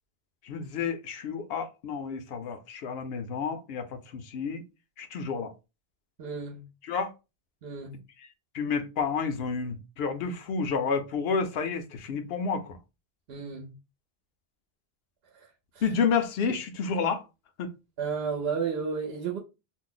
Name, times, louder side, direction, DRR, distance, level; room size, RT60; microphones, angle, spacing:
voice 1, 0.4-4.6 5.0-5.5 6.8-7.1 8.5-12.8 15.8-17.2 17.6-17.7, left 5 dB, 75° left, 0.8 m, -30 dB
voice 2, 6.2-6.7 7.6-8.0 13.3-13.7 15.3-15.5 18.0-19.4, right 6 dB, 70° right, 0.9 m, -32 dB
2.5 x 2.1 x 3.8 m
omnidirectional pair, 1.1 m